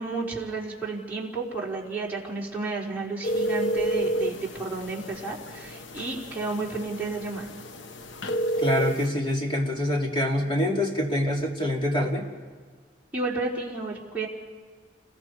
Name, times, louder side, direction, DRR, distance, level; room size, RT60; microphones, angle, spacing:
voice 1, 0.0-7.5 13.1-14.3, right 3 dB, 10° right, -6 dB, 3.7 m, -32 dB
sound 1, 3.2-9.1, right 1 dB, 85° left, 1.0 m, -30 dB
voice 2, 8.6-12.3, left 1 dB, 25° left, -1 dB, 2.8 m, -25 dB
29.5 x 21.0 x 4.7 m, 1.5 s
head